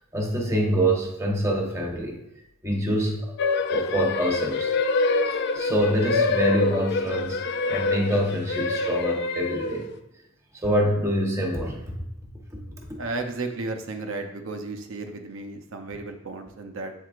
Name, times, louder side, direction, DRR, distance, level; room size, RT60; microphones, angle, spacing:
voice 1, 0.1-2.2 2.6-3.3 3.7-4.7 5.2-7.4 7.7-9.9 10.5-11.8, right 1 dB, 15° right, 0 dB, 1.0 m, -25 dB
sound 1, 3.4-9.9, left 3 dB, 55° left, 0.4 m, -26 dB
voice 2, 13.0-16.9, right 3 dB, 85° right, 5 dB, 0.7 m, -33 dB
8.3 x 4.5 x 2.5 m, 0.91 s
head